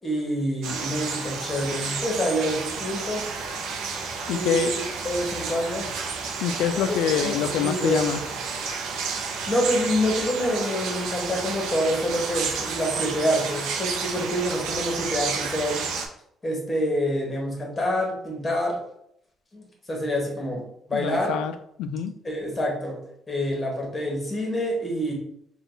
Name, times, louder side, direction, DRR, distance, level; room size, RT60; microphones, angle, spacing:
voice 1, 0.0-3.2 4.2-4.7 5.0-5.9 6.8-6.9 7.2-8.0 9.5-15.8 16.4-18.8 19.5-20.6 20.9-21.3 22.2-23.0 23.3-25.1, equal, 20° left, -1 dB, 1.3 m, -27 dB
sound 1, 0.6-16.1, right 5 dB, 90° right, 0.5 m, -31 dB
voice 2, 4.3-4.7 6.4-8.2 20.9-21.5 21.8-22.1, left 8 dB, 90° left, 10 dB, 0.3 m, -25 dB
3.7 x 2.3 x 3.9 m, 0.74 s
cardioid pair, 120°, 0 cm